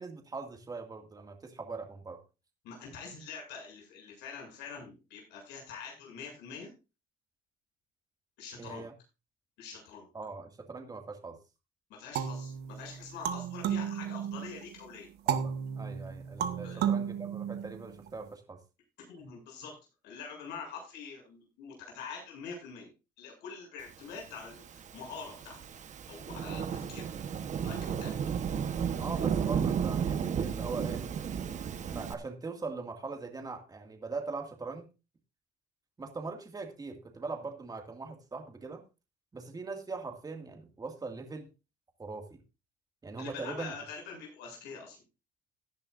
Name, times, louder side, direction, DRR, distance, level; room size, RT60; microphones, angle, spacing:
voice 1, 0.0-2.2 8.6-8.9 10.1-11.4 15.3-18.6 29.0-31.0 31.9-34.9 36.0-38.8 39.3-41.5 42.0-42.4 43.0-43.8, right 4 dB, 20° right, 4 dB, 2.2 m, -41 dB
voice 2, 2.6-6.7 8.4-8.8 9.6-10.1 11.9-15.1 16.6-16.9 19.1-19.8 20.0-22.9 23.2-25.6 26.1-27.1 27.6-28.2 43.2-45.0, left 5 dB, 90° left, 0 dB, 7.6 m, -45 dB
sound 1, 12.1-14.6 15.3-18.1, right 8 dB, 75° right, 1.3 m, -33 dB
Thunderstorm / Rain, 24.4-32.1, right 7 dB, 45° right, 1.2 m, -33 dB
16.5 x 10.5 x 2.6 m, 0.29 s
cardioid pair, 110°, 17 cm